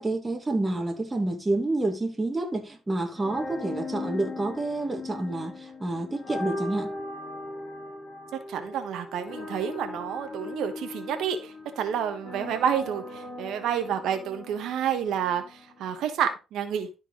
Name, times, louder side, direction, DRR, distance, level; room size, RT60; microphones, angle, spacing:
voice 1, 0.0-6.9, right 2 dB, 20° right, 1.7 m, -29 dB
sound 1, 3.1-16.1, left 2 dB, 50° left, 3.4 m, -39 dB
voice 2, 8.5-16.9, right 8 dB, 80° right, 1.2 m, -29 dB
12.0 x 4.5 x 3.8 m
cardioid pair, 90°, 0 cm